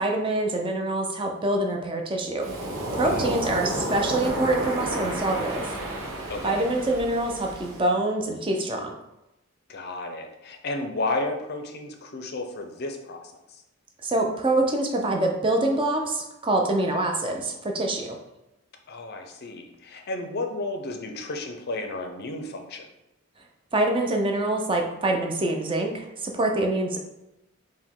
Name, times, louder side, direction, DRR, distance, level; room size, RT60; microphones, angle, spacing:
voice 1, 0.0-2.5 2.9-5.8 6.4-9.0 14.0-18.2 23.7-27.0, right 2 dB, 25° right, 2 dB, 0.5 m, -25 dB
Waves surf, 2.4-7.9, right 1 dB, 70° right, 0.8 m, -31 dB
voice 2, 3.0-3.3 6.3-6.7 9.7-13.6 18.9-22.9, left 2 dB, 50° left, 4 dB, 0.5 m, -33 dB
4.8 x 2.1 x 3.6 m, 0.92 s
head